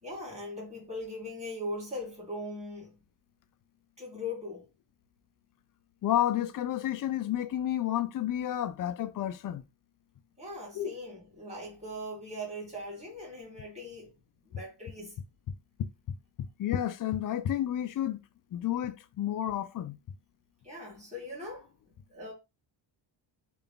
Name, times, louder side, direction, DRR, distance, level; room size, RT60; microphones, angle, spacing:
voice 1, 0.0-3.0 4.0-4.7 10.4-14.1 14.4-15.2 20.6-21.7 22.1-22.3, left 1 dB, 15° right, 2.0 m, -40 dB
voice 2, 6.0-9.7 10.7-10.9 16.4-18.2 18.5-20.0, left 11 dB, 45° left, 0.5 m, -31 dB
3.4 x 2.5 x 3.6 m
cardioid pair, 110°, 48 cm